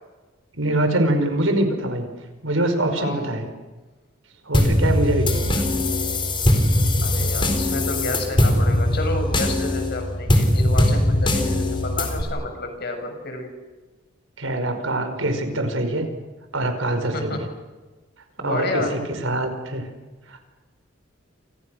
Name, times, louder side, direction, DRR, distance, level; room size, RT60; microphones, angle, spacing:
voice 1, 0.5-2.1 2.4-3.5 4.4-5.7 14.4-16.1 16.5-17.5 18.4-19.9 20.3-20.4, right 1 dB, 90° right, 7 dB, 5.4 m, -24 dB
voice 2, 2.9-3.4 7.0-13.5 17.1-17.5 18.4-19.0, left 2 dB, 55° left, 5 dB, 7.2 m, -30 dB
sound 1, 4.5-12.2, left 1 dB, 25° left, 4.2 m, -20 dB
29.5 x 29.0 x 6.6 m, 1.2 s
head